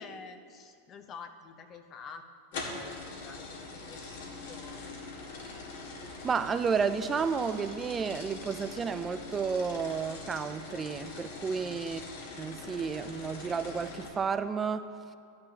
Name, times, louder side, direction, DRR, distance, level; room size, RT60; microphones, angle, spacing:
voice 1, 0.0-2.2 2.5-4.8 11.5-11.9, left 5 dB, 35° left, 8 dB, 0.8 m, -48 dB
sound 1, 2.5-14.1, left 3 dB, 75° left, 1.9 m, -43 dB
voice 2, 6.2-12.0 12.4-14.9, right 5 dB, 20° right, 11 dB, 0.4 m, -31 dB
12.5 x 9.6 x 2.9 m, 2.3 s
hypercardioid pair, 115°, 0 cm